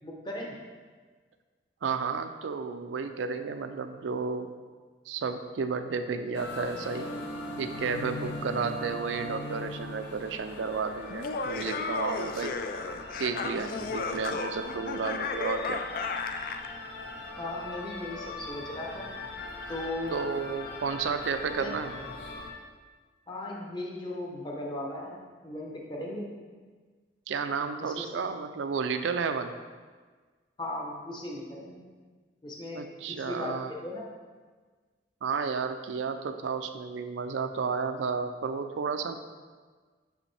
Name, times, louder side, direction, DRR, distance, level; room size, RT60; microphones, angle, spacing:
voice 1, 0.0-0.5 17.4-19.1 19.7-20.1 21.6-21.7 23.3-25.2 25.4-26.3 27.8-28.1 30.6-31.8 32.4-32.8 33.1-33.5 33.8-34.0, left 1 dB, 25° left, -2 dB, 0.9 m, -37 dB
voice 2, 1.8-4.5 5.1-7.1 7.6-12.5 13.2-15.8 20.1-22.0 27.3-29.5 32.7-33.7 35.2-39.2, right 5 dB, 85° right, 8 dB, 0.4 m, -32 dB
sound 1, 6.3-22.5, left 2 dB, 65° left, 0.7 m, -40 dB
Laughter, 11.1-16.7, left 4 dB, 50° left, 0.3 m, -34 dB
6.2 x 5.0 x 3.3 m, 1.4 s
head